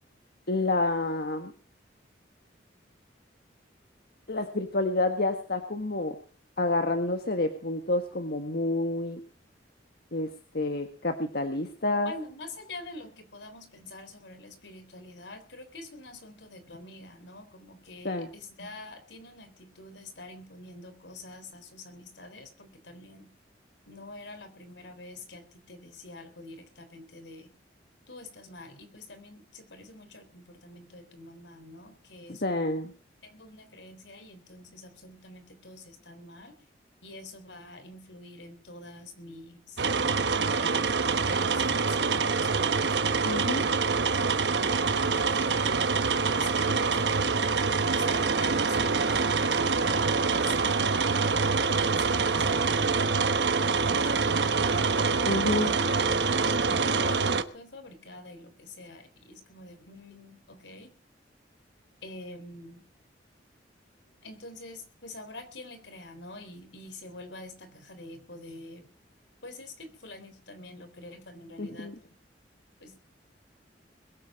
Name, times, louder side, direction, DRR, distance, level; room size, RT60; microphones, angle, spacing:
voice 1, 0.5-1.5 4.3-6.2 6.6-9.2 10.1-10.3 10.5-12.1 18.0-18.3 32.4-32.9 43.2-43.6 55.2-55.7 71.6-71.9, left 2 dB, 60° left, 6 dB, 1.6 m, -28 dB
voice 2, 12.0-23.3 23.9-27.5 28.1-32.7 33.2-36.5 37.0-39.8 40.6-42.9 45.0-45.8 46.3-47.5 47.9-53.0 53.8-55.0 55.4-60.9 62.0-62.9 64.2-68.9 69.4-71.9 72.8-72.9, left 2 dB, 80° left, 8 dB, 3.7 m, -46 dB
sound 1, 39.8-57.4, right 4 dB, 70° right, 1.1 m, -25 dB
21.5 x 8.2 x 6.3 m, 0.39 s
head